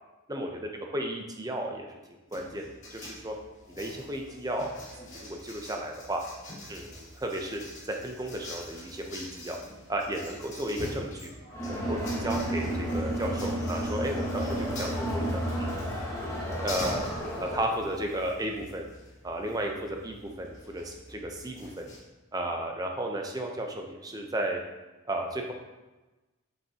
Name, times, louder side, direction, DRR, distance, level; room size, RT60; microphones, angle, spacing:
voice 1, 0.8-2.0 2.3-3.3 3.8-6.2 6.7-7.6 7.9-9.6 9.9-11.3 11.6-15.8 16.6-17.0 17.4-18.9 19.2-21.9 22.3-24.6 25.1-25.5, right 1 dB, 15° right, 2 dB, 0.7 m, -34 dB
sound 1, 2.3-22.0, left 1 dB, 35° left, 2.1 m, -45 dB
Crowd, 11.5-17.8, right 1 dB, 15° left, 1.2 m, -32 dB
7.0 x 6.4 x 2.9 m, 1.1 s
head